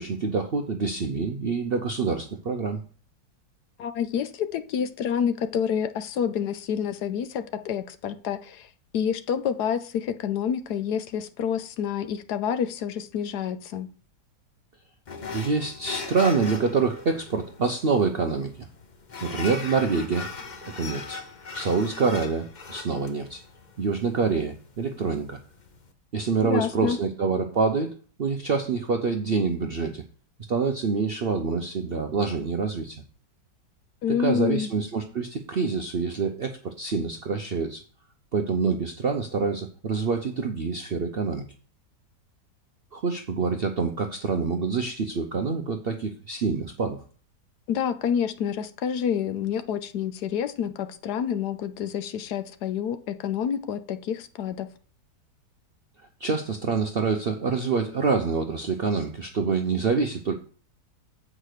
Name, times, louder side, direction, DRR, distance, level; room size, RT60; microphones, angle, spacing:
voice 1, 0.0-2.8 15.3-18.7 19.2-20.3 20.6-21.2 21.5-23.4 23.8-25.4 26.1-30.0 30.5-33.0 34.1-37.8 38.3-41.4 42.9-47.0 56.0-60.3, right 4 dB, 60° right, 4 dB, 0.6 m, -26 dB
voice 2, 3.8-8.7 8.9-13.9 26.4-27.0 34.0-34.7 47.7-54.7, left 8 dB, 70° left, 11 dB, 1.2 m, -28 dB
sound 1, 15.1-25.9, left 4 dB, 45° left, 0.6 m, -40 dB
7.9 x 4.9 x 6.5 m, 0.43 s
omnidirectional pair, 1.9 m